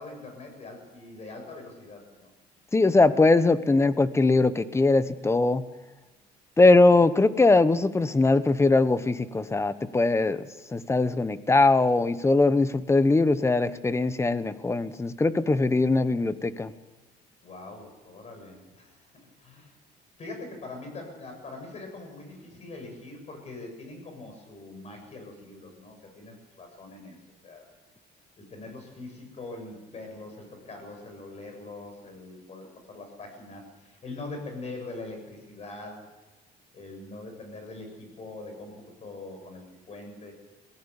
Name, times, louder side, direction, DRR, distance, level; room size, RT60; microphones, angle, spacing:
voice 1, 0.0-2.3 3.1-3.3 17.4-19.1 19.4-19.7 20.2-27.2 27.4-27.7 28.4-36.1 36.7-40.3, left 2 dB, 40° left, 4 dB, 7.9 m, -43 dB
voice 2, 2.7-5.6 6.6-10.5 10.7-16.7, left 3 dB, 15° left, 14 dB, 1.0 m, -21 dB
22.5 x 16.0 x 7.2 m, 1.2 s
cardioid pair, 110°, 17 cm